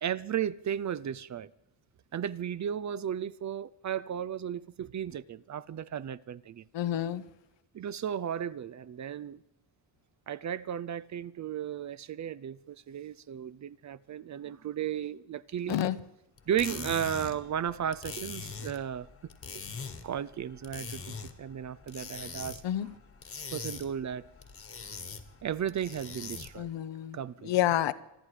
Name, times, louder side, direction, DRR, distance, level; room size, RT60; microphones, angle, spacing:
voice 1, 0.0-1.5 2.1-6.6 7.7-9.4 10.3-15.8 16.5-19.1 20.0-23.0 23.5-24.3 25.4-26.7 27.1-27.5, right 9 dB, 40° right, 0.5 m, -35 dB
voice 2, 6.7-7.2 15.7-16.0 22.6-22.9 26.6-27.2 27.4-27.9, left 12 dB, 75° left, 0.9 m, -28 dB
sound 1, 16.4-26.7, left 5 dB, 30° left, 1.5 m, -43 dB
26.0 x 10.0 x 4.9 m
cardioid pair, 125°, 44 cm